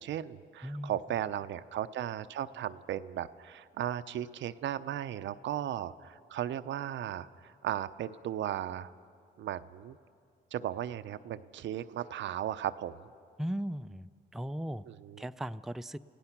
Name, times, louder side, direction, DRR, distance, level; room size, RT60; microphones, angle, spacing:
voice 1, 0.0-8.9 9.4-10.0 10.5-13.0 14.9-15.3, right 11 dB, 70° right, 12 dB, 0.7 m, -36 dB
voice 2, 0.6-1.0 13.4-14.8 15.2-16.0, equal, ahead, 10 dB, 0.4 m, -37 dB
29.5 x 16.5 x 5.9 m, 2.2 s
cardioid pair, 90°, 20 cm